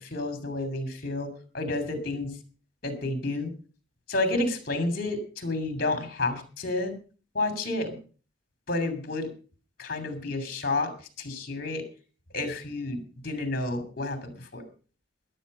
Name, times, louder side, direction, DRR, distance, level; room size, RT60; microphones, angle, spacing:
voice 1, 0.0-2.4 2.8-3.5 4.1-6.9 7.3-8.0 8.7-9.3 9.8-10.9 11.2-11.8 12.3-14.6, left 2 dB, 55° left, 9 dB, 2.9 m, -30 dB
14.5 x 10.5 x 5.4 m, 0.39 s
head